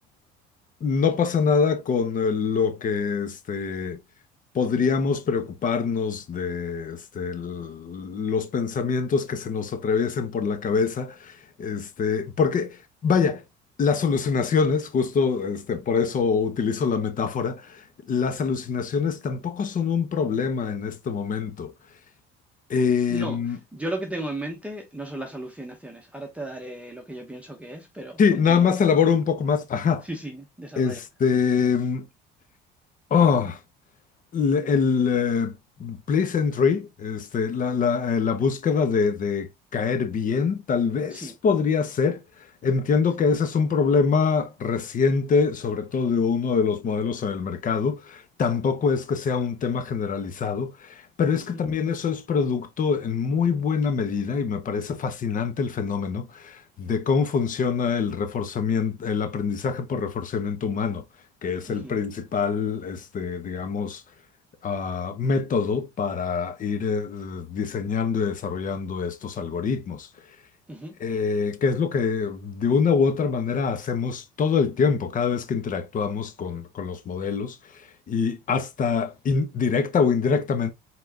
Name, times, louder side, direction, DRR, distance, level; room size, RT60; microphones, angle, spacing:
voice 1, 0.8-4.0 4.5-13.4 13.8-21.7 22.7-23.6 28.2-30.0 30.8-32.1 33.1-33.6 34.3-61.0 61.4-64.0 64.6-70.1 71.0-77.6 78.1-80.7, left 5 dB, 40° left, 1.1 m, -24 dB
voice 2, 23.7-28.7 30.0-31.0 41.1-41.3 51.5-51.6 61.7-61.9 70.7-71.0, right 1 dB, 5° right, 0.9 m, -35 dB
4.4 x 4.0 x 2.8 m
supercardioid pair, 100°, 21 cm